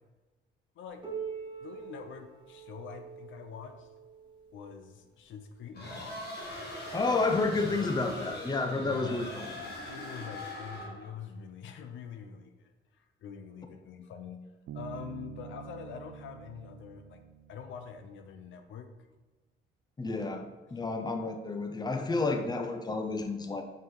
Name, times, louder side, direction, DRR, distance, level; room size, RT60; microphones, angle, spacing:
voice 1, 0.8-1.1 1.6-3.9 4.5-5.9 8.8-9.4 9.9-17.2 17.5-18.9 20.8-21.0, left 7 dB, 75° left, 7 dB, 0.6 m, -45 dB
Piano, 1.0-6.3 7.2-7.3 7.8-7.9 8.7-8.8 9.8-9.9, right 6 dB, 25° right, 1.5 m, -45 dB
sound 1, 5.7-11.1, left 1 dB, 55° left, 1.7 m, -41 dB
voice 2, 6.9-9.5 20.0-20.4 20.7-23.6, left 3 dB, 20° left, 5 dB, 0.7 m, -30 dB
Bass guitar, 14.7-18.4, right 9 dB, 75° right, 0.4 m, -47 dB
5.7 x 4.7 x 3.8 m, 1.2 s
cardioid pair, 90°, 20 cm